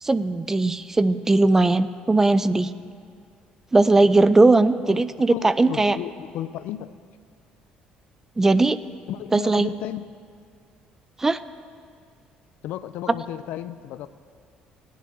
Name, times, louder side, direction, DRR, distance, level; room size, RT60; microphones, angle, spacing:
voice 1, 0.0-2.7 3.7-6.0 8.4-8.8 9.3-9.7 11.2-11.4, right 2 dB, 15° right, 14 dB, 0.4 m, -19 dB
voice 2, 4.8-6.9 9.1-10.1 12.6-14.1, left 12 dB, 75° left, 14 dB, 0.4 m, -34 dB
18.0 x 10.5 x 3.6 m, 2.1 s
cardioid pair, 110°, 3 cm